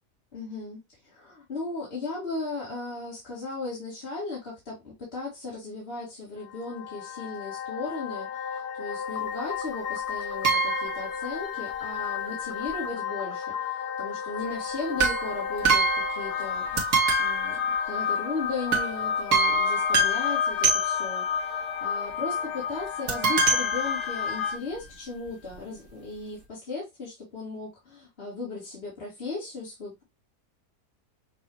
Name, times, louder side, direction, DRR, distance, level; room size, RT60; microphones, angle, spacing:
voice 1, 0.3-13.5 14.0-16.7 17.2-17.6 17.8-30.0, left 3 dB, 40° left, 2.0 m, -36 dB
sound 1, 6.4-24.6, left 7 dB, 75° left, 1.4 m, -31 dB
sound 2, 10.4-11.2 15.0-16.5 16.8-18.3 18.7-19.0 19.3-21.3 23.1-24.5 25.3-25.4 25.5-25.6, right 3 dB, 65° right, 1.9 m, -26 dB
6.4 x 2.7 x 2.9 m
omnidirectional pair, 1.8 m